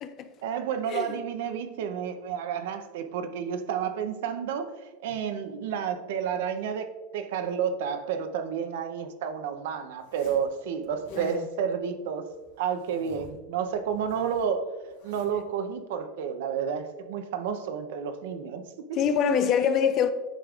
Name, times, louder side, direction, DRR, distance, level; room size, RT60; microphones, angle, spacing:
voice 1, 0.4-4.7 5.0-12.3 12.6-14.7 15.0-19.0, right 7 dB, 80° right, 0.6 m, -31 dB
Zipper (clothing), 10.0-10.5 10.8-11.4 12.3-13.4 13.7-15.4, left 3 dB, 85° left, 1.9 m, -52 dB
voice 2, 11.1-11.5 18.9-20.1, left 7 dB, 40° left, 0.5 m, -25 dB
9.0 x 5.2 x 2.4 m
supercardioid pair, 140°, 0 cm